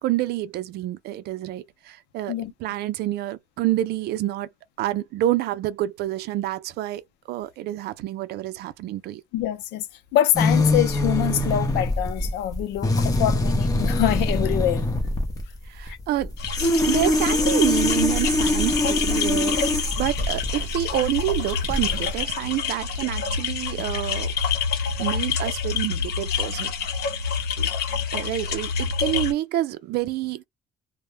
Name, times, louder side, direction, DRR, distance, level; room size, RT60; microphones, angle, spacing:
voice 1, 0.0-4.5 4.8-9.2 15.7-16.3 16.8-24.3 25.0-26.7 27.6-27.7 28.1-30.4, right 14 dB, 75° right, 0.4 m, -28 dB
voice 2, 9.3-9.9 10.1-14.8 15.9-16.0, left 12 dB, 90° left, 0.5 m, -25 dB
sound 1, 10.3-22.2, left 2 dB, 20° left, 0.7 m, -23 dB
sound 2, 16.4-29.3, left 6 dB, 70° left, 0.9 m, -28 dB
2.1 x 2.1 x 3.2 m
cardioid pair, 110°, 17 cm